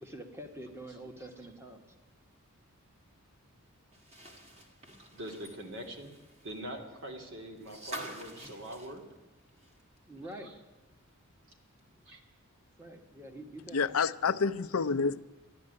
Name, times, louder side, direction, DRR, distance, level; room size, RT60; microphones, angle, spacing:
voice 1, 0.0-1.8 10.1-10.5 12.8-14.0, right 1 dB, 10° right, 1.5 m, -46 dB
sound 1, 3.9-10.0 10.3-10.4 11.8-11.9, right 1 dB, 30° right, 2.2 m, -48 dB
voice 2, 5.1-6.2 6.4-9.0 10.4-10.5 12.1-12.2, right 1 dB, 60° right, 2.9 m, -43 dB
voice 3, 13.7-15.2, left 5 dB, 70° left, 0.6 m, -28 dB
13.5 x 11.0 x 9.7 m
head